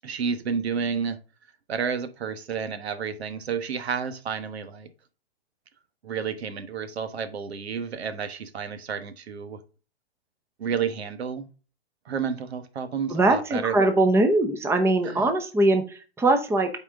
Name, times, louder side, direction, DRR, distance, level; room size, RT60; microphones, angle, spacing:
voice 1, 0.0-1.2 1.7-4.9 6.0-9.6 10.6-11.5 12.0-13.7 15.0-15.3, right 6 dB, 75° right, 10 dB, 1.4 m, -30 dB
voice 2, 13.1-16.7, right 2 dB, 10° right, 7 dB, 0.8 m, -21 dB
8.8 x 4.5 x 3.7 m, 0.34 s
hypercardioid pair, 130°, 32 cm